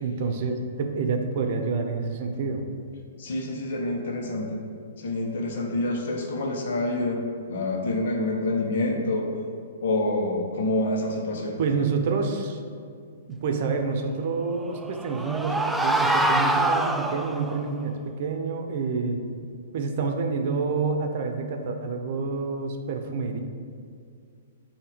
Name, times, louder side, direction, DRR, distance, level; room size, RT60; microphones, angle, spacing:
voice 1, 0.0-2.6 11.6-12.6 13.3-19.2 19.7-23.4, right 4 dB, 50° right, 4 dB, 0.7 m, -28 dB
voice 2, 3.2-4.6 5.0-9.3 9.8-11.6, left 2 dB, 60° left, 0 dB, 1.3 m, -27 dB
sound 1, 14.6-17.6, right 1 dB, 5° right, 0.4 m, -25 dB
8.4 x 2.9 x 5.1 m, 2.2 s
figure-of-eight pair, 115°, 0 cm